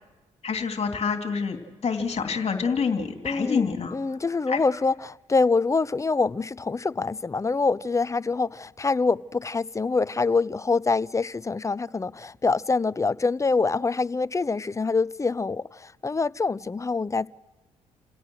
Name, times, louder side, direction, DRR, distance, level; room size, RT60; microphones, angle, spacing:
voice 1, 0.4-3.9 4.5-4.6, left 5 dB, 45° left, 3.1 m, -27 dB
voice 2, 3.2-17.3, left 4 dB, 20° left, 0.6 m, -25 dB
29.0 x 17.0 x 6.3 m
hypercardioid pair, 55°, 15 cm